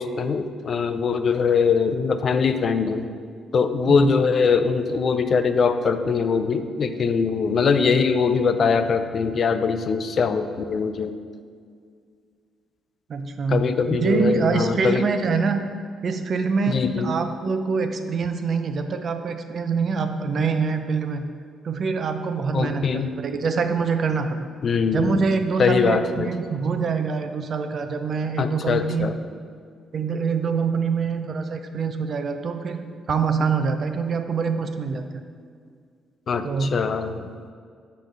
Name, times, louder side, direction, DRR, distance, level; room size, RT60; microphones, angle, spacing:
voice 1, 0.0-3.0 3.5-11.1 13.5-15.1 16.7-17.1 22.5-23.1 24.6-25.3 25.6-26.3 28.4-29.1 36.3-37.3, left 5 dB, 50° left, 9 dB, 0.4 m, -22 dB
voice 2, 13.1-13.6 14.0-15.6 16.0-16.7 17.0-21.2 21.6-24.5 24.9-29.1 29.9-35.0 36.4-36.7, right 5 dB, 50° right, 7 dB, 0.5 m, -25 dB
6.5 x 3.2 x 5.3 m, 2.1 s
cardioid pair, 90°, 0 cm